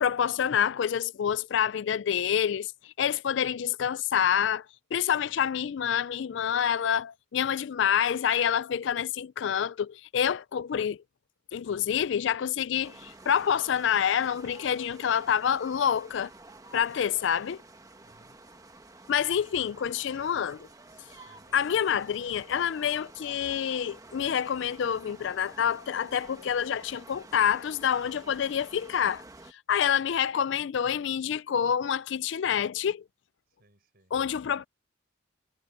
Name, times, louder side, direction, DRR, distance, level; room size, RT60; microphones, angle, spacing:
voice 1, 0.0-2.7 3.0-4.6 4.9-11.0 11.5-16.3 16.7-17.6 19.1-20.6 21.5-29.2 29.7-33.0 34.1-34.7, left 8 dB, 65° left, 0.4 m, -27 dB
voice 2, 5.1-5.5 11.7-12.0 16.9-17.3 18.0-18.4 19.2-19.8 21.3-21.7 29.7-30.3 33.5-34.1, right 1 dB, 50° right, 5.6 m, -63 dB
sound 1, 12.8-29.5, right 2 dB, 15° right, 1.2 m, -50 dB
head